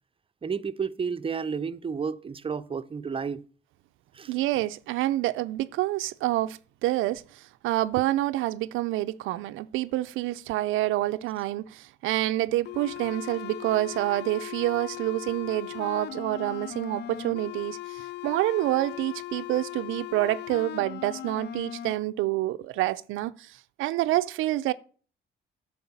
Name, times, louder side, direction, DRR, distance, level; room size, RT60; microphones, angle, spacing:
voice 1, 0.4-3.5 4.1-4.3, right 6 dB, 25° right, 0.6 m, -31 dB
voice 2, 4.3-24.7, right 16 dB, 90° right, 0.4 m, -28 dB
sound 1, 12.6-21.9, left 13 dB, 60° left, 0.4 m, -38 dB
9.4 x 4.8 x 7.0 m
cardioid pair, 90°, 20 cm